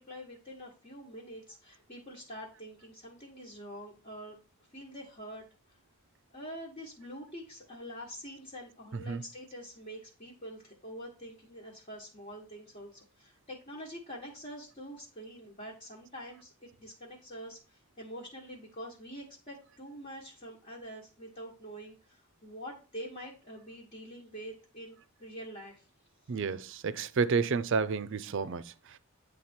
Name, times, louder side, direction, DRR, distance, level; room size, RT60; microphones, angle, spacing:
voice 1, 0.0-4.4 4.7-5.8 6.3-25.8, equal, 35° left, 1.3 m, -46 dB
voice 2, 8.9-9.2 26.3-29.0, right 5 dB, 55° right, 0.4 m, -31 dB
9.5 x 3.4 x 4.3 m
head